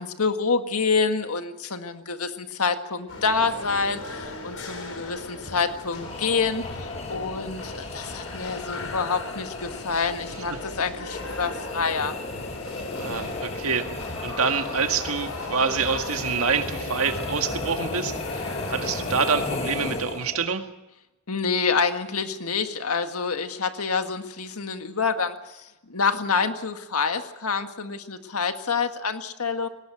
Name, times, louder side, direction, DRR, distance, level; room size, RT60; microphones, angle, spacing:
voice 1, 0.0-12.1 21.3-29.7, left 5 dB, 85° left, 7 dB, 1.7 m, -27 dB
sound 1, 3.1-20.0, left 2 dB, 70° left, 5.0 m, -37 dB
sound 2, 6.0-20.5, left 3 dB, 30° left, 1.3 m, -35 dB
voice 2, 13.0-13.9 14.2-20.6, right 5 dB, 70° right, 6 dB, 1.9 m, -26 dB
19.0 x 18.0 x 8.8 m, 0.99 s
head